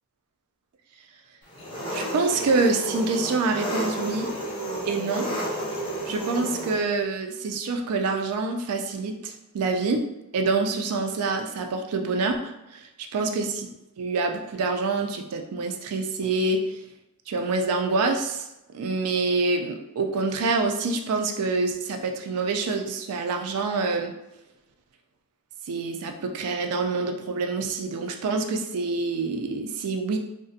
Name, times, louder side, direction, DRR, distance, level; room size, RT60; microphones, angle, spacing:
Engine, 1.5-6.8, right 1 dB, 25° left, 0.4 m, -31 dB
voice 1, 1.9-4.3 4.8-5.3 6.0-10.0 10.3-13.7 14.0-16.8 17.3-24.1 25.7-30.2, right 3 dB, 75° right, 4 dB, 0.4 m, -26 dB
2.4 x 2.0 x 2.6 m, 0.93 s
head